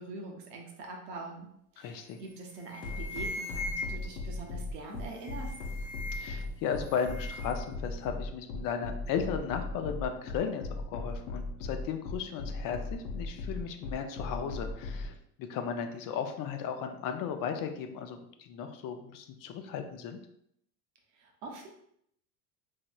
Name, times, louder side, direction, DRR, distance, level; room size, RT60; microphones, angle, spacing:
voice 1, 0.0-1.5 1.7-5.5 21.1-21.7, right 3 dB, 85° right, 1 dB, 0.8 m, -44 dB
voice 2, 1.8-2.2 6.1-20.2, left 7 dB, 45° left, 6 dB, 0.4 m, -35 dB
sound 1, 2.1-2.3 2.6-4.3 5.1-6.6 6.8-7.6, left 2 dB, 5° right, 0.6 m, -40 dB
sound 2, 2.8-15.1, left 3 dB, 75° left, 0.8 m, -37 dB
3.0 x 2.7 x 2.2 m, 0.72 s
supercardioid pair, 90°, 48 cm